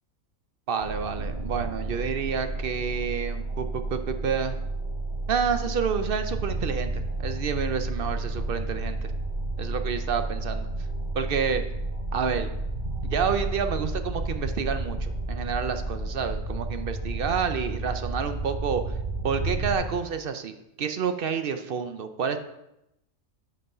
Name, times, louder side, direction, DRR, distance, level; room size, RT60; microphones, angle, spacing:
voice 1, 0.7-4.6 5.3-9.1 9.6-10.7 11.1-11.6 12.1-12.5 13.0-18.9 19.2-22.4, right 6 dB, 60° right, 8 dB, 0.6 m, -29 dB
sound 1, 0.8-19.7, right 2 dB, 35° right, 2.4 m, -31 dB
7.9 x 5.4 x 5.4 m, 0.86 s
omnidirectional pair, 1.4 m